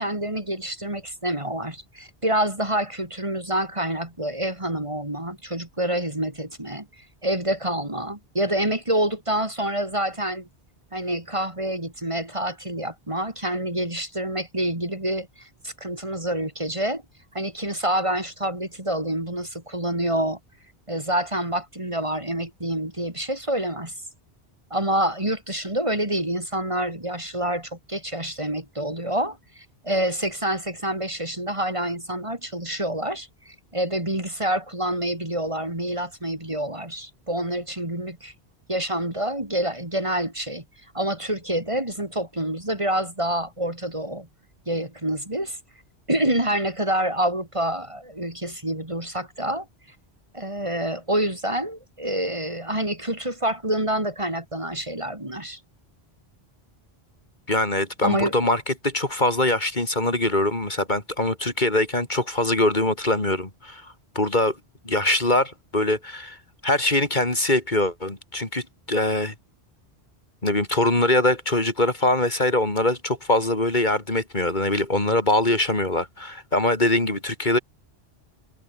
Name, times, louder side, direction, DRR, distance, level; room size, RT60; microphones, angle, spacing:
voice 1, 0.0-10.5 10.9-17.0 17.3-20.4 20.9-23.9 24.7-38.3 38.7-40.6 40.9-44.3 44.7-45.6 46.1-49.7 50.3-55.6 58.0-58.3, right 1 dB, 30° right, 3.7 m, -27 dB
voice 2, 57.5-64.6 64.8-66.4 66.6-69.3 70.4-77.6, left 1 dB, 45° left, 3.5 m, -23 dB
omnidirectional pair, 1.1 m